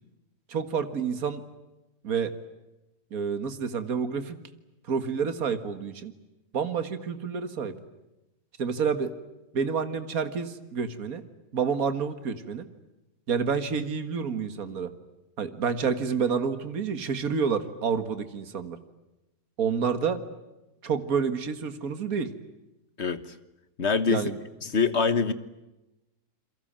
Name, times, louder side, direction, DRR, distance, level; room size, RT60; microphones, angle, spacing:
voice 1, 0.5-1.4 2.0-2.3 3.1-4.4 4.9-6.1 6.5-7.7 8.6-9.1 9.5-11.2 11.5-12.7 13.3-14.9 15.4-18.8 19.6-20.2 20.8-22.3 24.1-24.4, right 6 dB, 60° right, 11 dB, 2.2 m, -28 dB
voice 2, 23.8-24.3 24.6-25.3, left 5 dB, 45° left, 14 dB, 1.4 m, -24 dB
29.0 x 23.0 x 8.8 m, 0.97 s
omnidirectional pair, 1.7 m